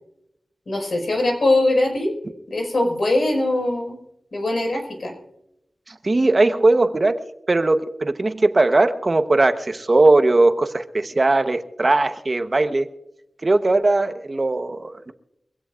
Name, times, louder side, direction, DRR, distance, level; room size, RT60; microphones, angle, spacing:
voice 1, 0.7-2.1 2.5-4.0 4.3-5.1, left 2 dB, 70° left, 2 dB, 5.4 m, -21 dB
voice 2, 6.0-12.9 13.4-15.1, right 2 dB, 40° right, 8 dB, 1.1 m, -19 dB
24.0 x 16.5 x 2.5 m, 0.83 s
wide cardioid pair, 100°, 0 cm